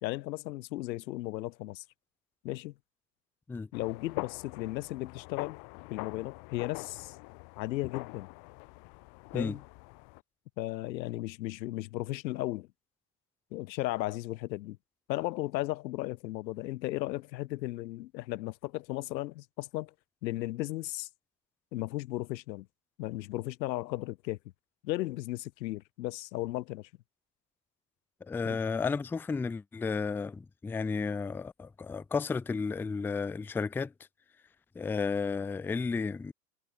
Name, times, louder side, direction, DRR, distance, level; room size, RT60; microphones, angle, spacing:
voice 1, 0.0-1.8 2.4-2.7 3.7-5.6 5.9-7.2 7.6-8.3 9.3-9.6 10.6-12.7 13.5-14.8 15.1-19.9 20.2-21.1 21.7-22.7 23.0-24.4 24.8-26.9 28.4-28.6, left 17 dB, 85° left, 0.8 m, -35 dB
sound 1, 3.7-10.2, left 32 dB, 45° left, 2.3 m, -44 dB
voice 2, 28.3-33.9 34.8-36.3, left 4 dB, 5° left, 0.5 m, -32 dB
supercardioid pair, 140°, 50 cm